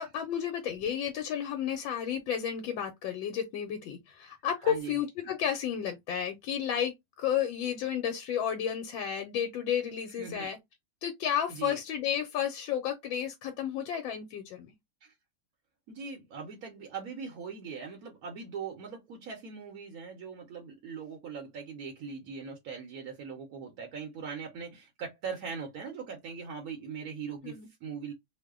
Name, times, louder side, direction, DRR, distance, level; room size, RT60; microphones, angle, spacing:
voice 1, 0.0-10.6 11.0-14.7 27.4-27.7, left 9 dB, 85° left, 1.3 m, -32 dB
voice 2, 4.6-5.0 10.2-10.5 11.5-11.8 15.0-15.1 15.9-28.1, right 6 dB, 65° right, 1.0 m, -40 dB
3.1 x 2.1 x 3.5 m
omnidirectional pair, 2.1 m